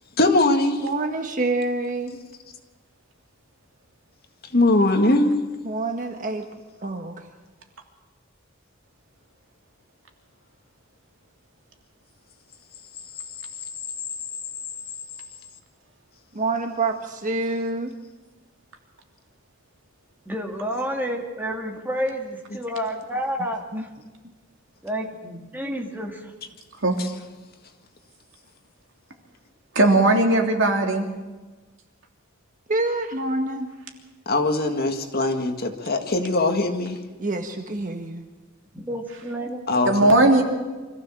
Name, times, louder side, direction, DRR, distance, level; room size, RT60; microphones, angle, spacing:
voice 1, 0.2-0.9 4.4-5.5 22.5-22.6 27.0-27.1 34.3-37.0 39.7-40.1, left 2 dB, 50° left, 5 dB, 2.0 m, -21 dB
voice 2, 0.8-2.1 5.6-6.5 6.8-7.1 16.3-17.9 23.7-23.8 32.7-33.7 37.2-38.2, right 2 dB, 40° right, 4 dB, 1.4 m, -27 dB
voice 3, 20.3-23.9 24.8-26.3 38.7-39.6, equal, 10° right, 1 dB, 2.6 m, -30 dB
voice 4, 29.7-31.1 39.8-40.4, right 2 dB, 65° right, 2 dB, 3.1 m, -17 dB
25.0 x 15.0 x 7.4 m, 1.3 s
head